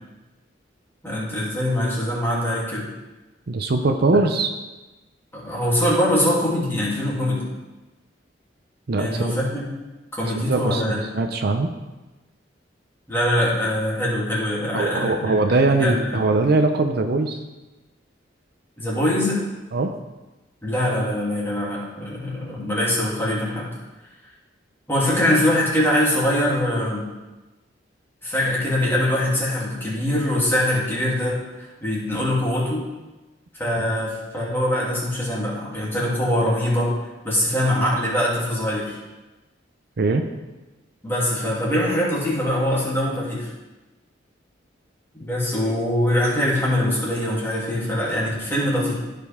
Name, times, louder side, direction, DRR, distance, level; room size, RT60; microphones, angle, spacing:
voice 1, 1.0-2.8 4.1-4.2 5.3-7.4 9.0-9.6 10.1-11.1 13.1-15.3 15.7-16.2 18.8-19.4 20.6-23.7 24.9-27.1 28.2-32.9 33.6-36.9 37.2-39.0 41.0-43.5 45.2-48.9, left 1 dB, 15° left, -7 dB, 2.8 m, -23 dB
voice 2, 3.5-4.5 8.9-9.4 10.4-11.7 14.7-17.4 19.7-19.9 33.8-33.9 40.0-40.3, right 3 dB, 55° right, 6 dB, 0.6 m, -21 dB
15.0 x 5.2 x 3.6 m, 1.1 s
head